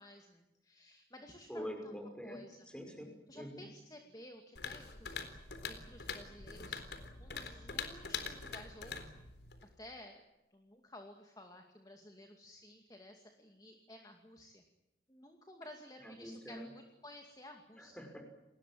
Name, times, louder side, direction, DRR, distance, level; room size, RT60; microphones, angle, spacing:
voice 1, 0.0-1.9 2.2-2.6 3.3-5.4 5.6-9.0 9.8-10.2 10.5-14.6 15.1-18.0, left 1 dB, 20° left, 4 dB, 2.3 m, -54 dB
voice 2, 1.5-2.4 2.7-3.6 16.0-16.7 17.8-18.2, equal, 5° left, 4 dB, 5.6 m, -45 dB
sound 1, 4.6-9.7, left 5 dB, 75° left, 3.9 m, -44 dB
29.5 x 21.0 x 7.7 m, 0.97 s
head